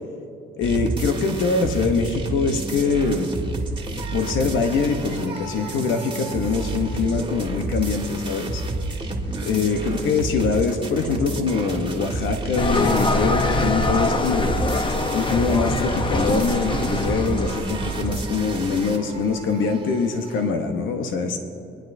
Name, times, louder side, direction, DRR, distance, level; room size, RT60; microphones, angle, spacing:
voice 1, 0.6-3.3 4.1-8.6 9.5-14.6 15.1-21.4, left 4 dB, 80° left, 5 dB, 0.9 m, -23 dB
sound 1, 0.6-20.5, right 2 dB, 25° right, 1.6 m, -30 dB
sound 2, 12.6-18.2, left 2 dB, 25° left, 0.8 m, -24 dB
23.5 x 10.0 x 2.6 m, 2.8 s
cardioid pair, 90°, 20 cm